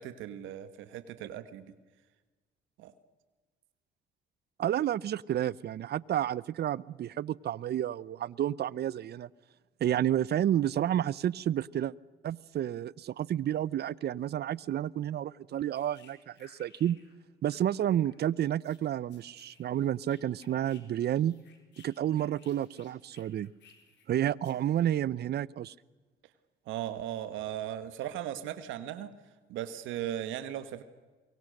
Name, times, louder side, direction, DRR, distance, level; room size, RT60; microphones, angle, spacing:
voice 1, 0.0-1.7 2.8-2.9 26.7-29.1 29.5-30.8, right 11 dB, 80° right, 11 dB, 1.5 m, -37 dB
voice 2, 4.6-9.3 9.8-11.9 12.2-17.0 17.4-21.3 21.8-23.5 24.1-25.7, right 11 dB, 55° right, 22 dB, 0.7 m, -30 dB
sound 1, 15.7-17.2 17.4-20.8 21.1-24.1 24.4-24.7, left 6 dB, 65° left, 4.7 m, -61 dB
23.5 x 23.0 x 6.6 m, 1.3 s
supercardioid pair, 75°, 20 cm